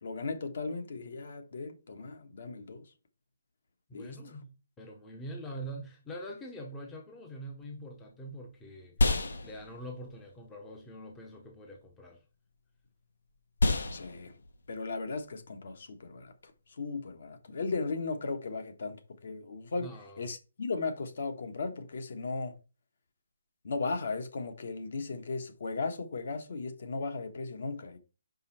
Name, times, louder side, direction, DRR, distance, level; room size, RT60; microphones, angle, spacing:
voice 1, 0.0-2.9 3.9-4.2 13.9-14.3 14.7-16.3 16.8-19.9 20.2-22.6 23.6-28.0, left 3 dB, 50° left, 1.3 m, -36 dB
voice 2, 3.9-4.5 4.8-9.2 9.4-12.2 19.8-20.3, right 1 dB, 10° left, 0.7 m, -44 dB
sound 1, 7.6-17.2, left 2 dB, 75° left, 1.3 m, -34 dB
5.4 x 5.3 x 4.3 m
hypercardioid pair, 175°, 0 cm